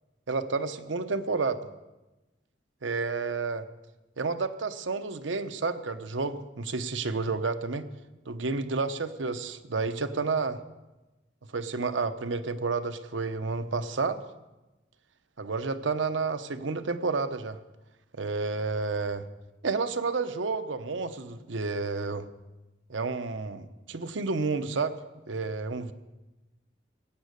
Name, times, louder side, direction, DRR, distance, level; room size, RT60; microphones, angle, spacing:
voice 1, 0.3-1.7 2.8-3.7 4.2-7.8 8.3-10.6 11.5-14.2 15.4-17.6 18.1-19.2 19.6-22.3 22.9-25.0 25.3-25.9, right 4 dB, 90° right, 11 dB, 0.8 m, -30 dB
16.0 x 8.2 x 6.7 m, 1.1 s
head